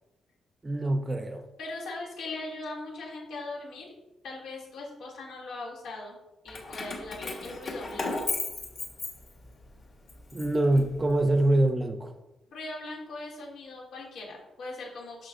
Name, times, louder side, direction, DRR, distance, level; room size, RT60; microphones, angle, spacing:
voice 1, 0.6-1.4 10.3-12.1, right 1 dB, 15° right, 6 dB, 0.6 m, -24 dB
voice 2, 1.6-3.9 4.2-6.2 6.4-8.3 12.5-15.3, left 2 dB, 85° left, -3 dB, 2.6 m, -40 dB
Keys jangling, 6.5-9.6 10.1-11.4, left 3 dB, 40° left, 1.5 m, -35 dB
11.0 x 5.9 x 2.6 m, 0.95 s
wide cardioid pair, 165°, 0 cm